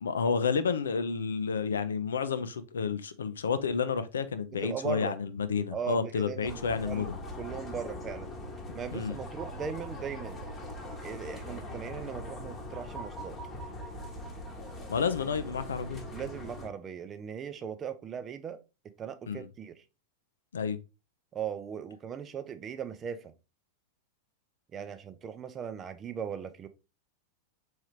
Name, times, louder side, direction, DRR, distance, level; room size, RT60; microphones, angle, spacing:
voice 1, 0.0-7.2 8.9-9.2 14.9-16.0 19.3-19.5 20.5-20.8, left 5 dB, 70° left, 0.4 m, -30 dB
voice 2, 4.5-5.1 5.7-7.1 7.4-8.3 8.7-10.4 11.0-13.4 16.1-19.8 21.3-23.3 24.7-26.7, right 7 dB, 25° right, 0.5 m, -38 dB
sound 1, 6.4-16.7, left 1 dB, 20° left, 1.0 m, -41 dB
4.6 x 3.2 x 3.0 m
figure-of-eight pair, 90°, 0 cm